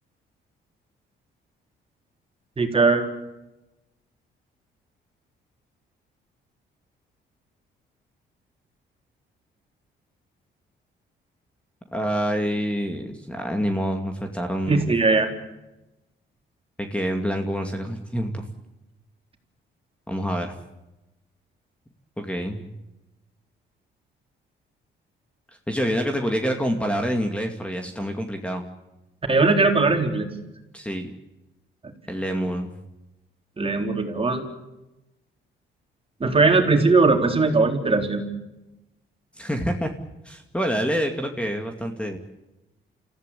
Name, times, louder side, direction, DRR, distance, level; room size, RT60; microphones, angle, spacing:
voice 1, 2.6-3.0 14.7-15.3 29.3-30.3 33.6-34.5 36.2-38.2, right 3 dB, 30° right, 4 dB, 3.8 m, -19 dB
voice 2, 11.9-14.9 16.8-18.5 20.1-20.6 22.2-22.7 25.7-28.6 30.7-31.1 32.1-32.7 39.4-39.9 40.2-42.2, equal, 5° left, 4 dB, 2.4 m, -27 dB
28.5 x 15.5 x 8.5 m, 0.99 s
cardioid pair, 90°, 20 cm